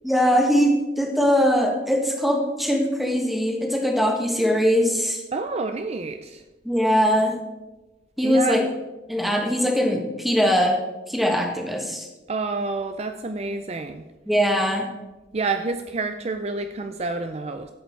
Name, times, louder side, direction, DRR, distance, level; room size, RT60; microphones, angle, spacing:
voice 1, 0.0-5.2 6.6-7.4 8.2-8.6 9.1-10.8 11.1-12.1 14.3-14.9, equal, ahead, 2 dB, 1.5 m, -21 dB
voice 2, 5.3-6.4 8.2-8.6 12.3-14.0 15.3-17.7, right 3 dB, 35° right, 8 dB, 0.5 m, -28 dB
12.5 x 8.0 x 4.6 m, 1.1 s
head